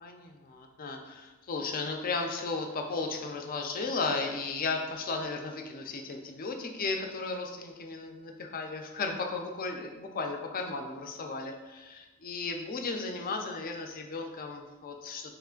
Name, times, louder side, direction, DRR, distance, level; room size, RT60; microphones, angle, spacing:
voice 1, 0.0-15.3, left 3 dB, 40° left, 3 dB, 0.5 m, -35 dB
3.2 x 3.1 x 3.7 m, 1.2 s
head